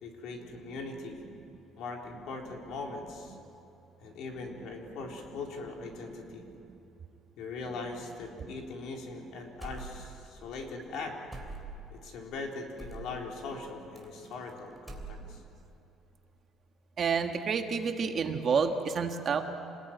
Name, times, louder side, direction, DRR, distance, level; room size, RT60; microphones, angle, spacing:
voice 1, 0.0-1.2 1.8-3.4 4.0-6.4 7.4-11.2 11.9-15.4, left 3 dB, 60° left, 1 dB, 4.1 m, -40 dB
sound 1, 9.6-10.3 10.5-10.7 11.3-11.9 12.8-13.1 14.0-14.5 14.8-15.5, right 3 dB, 5° right, 3.3 m, -43 dB
voice 2, 17.0-19.4, right 5 dB, 35° right, 5 dB, 1.5 m, -29 dB
28.5 x 20.5 x 9.4 m, 2.9 s
cardioid pair, 170°, 0 cm